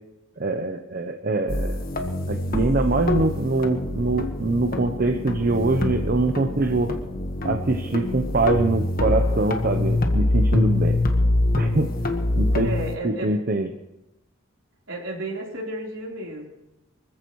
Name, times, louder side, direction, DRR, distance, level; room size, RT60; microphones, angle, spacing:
voice 1, 0.4-1.8 2.3-7.0 7.4-11.0 11.6-11.9 12.4-12.7 13.0-13.7, right 2 dB, 45° right, 5 dB, 0.8 m, -23 dB
sound 1, 1.5-12.9, left 1 dB, 45° left, 1.5 m, -24 dB
voice 2, 12.6-13.4 14.9-16.5, right 1 dB, 70° right, -2 dB, 4.0 m, -32 dB
24.5 x 15.0 x 3.2 m, 0.95 s
head